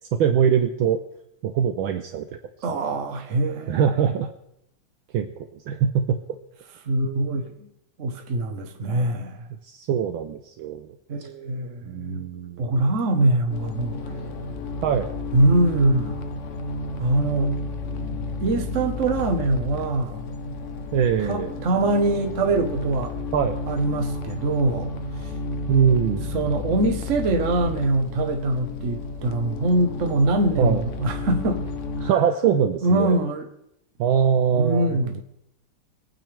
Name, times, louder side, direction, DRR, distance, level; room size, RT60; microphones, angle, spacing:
voice 1, 0.1-1.0 1.4-2.4 3.7-4.3 5.1-6.2 9.6-10.9 11.2-11.3 11.9-12.7 14.8-15.1 20.9-21.6 23.3-23.6 25.7-26.3 30.6-30.8 32.0-33.2 34.0-35.0, right 8 dB, 75° right, 1.4 m, -22 dB
voice 2, 2.6-4.1 6.8-7.7 8.0-9.5 11.1-12.2 12.6-14.0 15.3-16.3 17.0-17.6 18.4-20.2 21.2-23.1 23.7-24.9 25.2-25.3 26.3-31.6 32.0-32.2 32.8-33.5 34.5-35.2, right 2 dB, 45° right, 1.3 m, -23 dB
sound 1, 13.5-32.1, left 3 dB, 65° left, 0.7 m, -32 dB
23.5 x 9.3 x 3.4 m
omnidirectional pair, 2.4 m